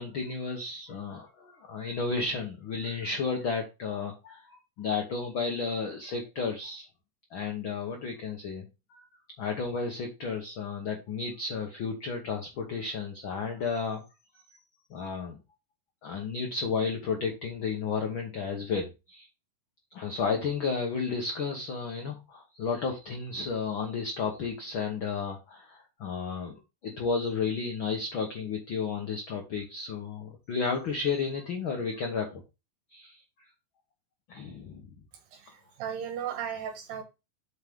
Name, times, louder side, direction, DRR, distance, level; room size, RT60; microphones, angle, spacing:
voice 1, 0.0-6.9 7.3-9.0 9.4-14.0 14.5-14.6 14.9-15.4 16.0-19.3 19.9-32.4 32.9-33.2 34.3-34.9, left 5 dB, 80° left, 3 dB, 1.1 m, -32 dB
voice 2, 35.8-37.0, right 8 dB, 85° right, 5 dB, 2.9 m, -35 dB
8.1 x 4.8 x 3.6 m, 0.27 s
omnidirectional pair, 3.9 m